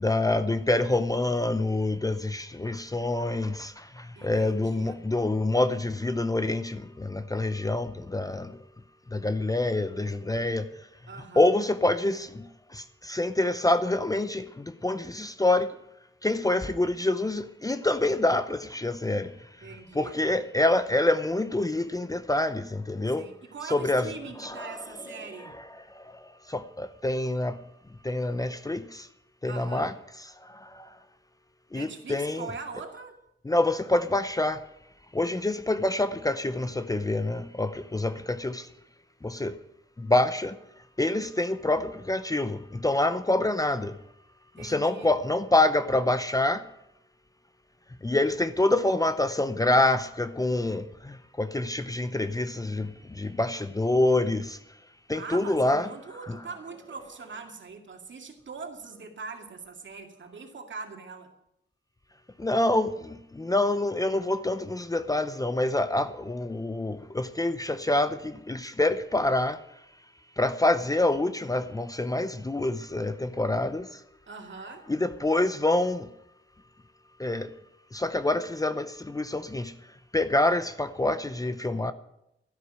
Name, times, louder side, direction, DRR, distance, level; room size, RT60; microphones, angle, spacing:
voice 1, 0.0-8.6 9.1-10.7 11.4-15.7 16.2-19.3 19.9-23.3 23.7-24.1 24.4-24.7 25.9-26.2 26.5-27.6 28.0-29.1 29.4-29.9 30.4-30.9 31.7-32.5 33.5-34.6 35.1-38.7 39.2-39.6 40.0-40.6 41.0-44.0 44.6-46.6 48.0-54.6 55.1-55.9 56.3-56.4 62.4-69.6 70.4-74.0 74.9-76.1 77.2-77.5 77.9-79.7 80.1-81.9, left 2 dB, 15° left, 0.6 m, -26 dB
voice 2, 4.2-5.0 11.1-11.5 19.6-20.2 23.0-25.6 29.4-29.9 31.7-33.1 44.6-45.1 55.1-61.3 74.3-74.9, right 4 dB, 60° right, 2.3 m, -42 dB
13.0 x 11.5 x 6.3 m
wide cardioid pair, 115°, 21 cm